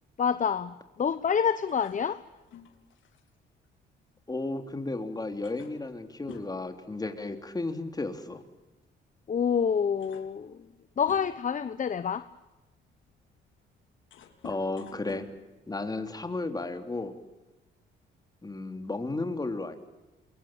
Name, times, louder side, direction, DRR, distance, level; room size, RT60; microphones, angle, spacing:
voice 1, 0.2-2.2 9.3-10.7 11.0-12.3, left 7 dB, 40° left, 13 dB, 1.0 m, -27 dB
sound 1, 1.7-4.7 5.0-5.1 5.4-7.6 7.9-8.1 9.1-9.2 9.7-11.6 12.2-16.3, left 7 dB, 75° left, 3.8 m, -51 dB
voice 2, 4.3-8.4 14.4-15.3 15.7-17.1 18.4-19.8, left 2 dB, 20° left, 6 dB, 3.7 m, -33 dB
27.5 x 23.0 x 9.0 m, 1.1 s
cardioid pair, 90°, 20 cm